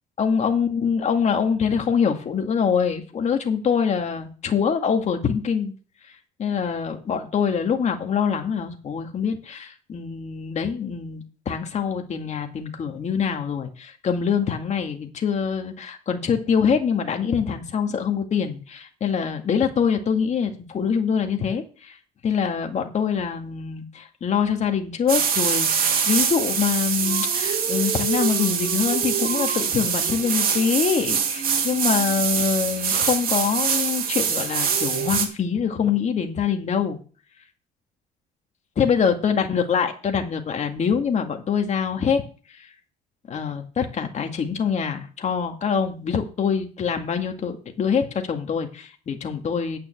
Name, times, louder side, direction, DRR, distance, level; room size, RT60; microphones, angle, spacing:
voice 1, 0.2-5.7 6.4-22.0 22.2-25.7 26.0-37.0 38.8-42.2 42.6-42.7 43.3-49.8, left 6 dB, 40° left, 4 dB, 2.1 m, -24 dB
sound 1, 25.1-35.3, right 7 dB, 60° right, 2.4 m, -24 dB
9.4 x 5.8 x 7.7 m, 0.38 s
cardioid pair, 110°, 17 cm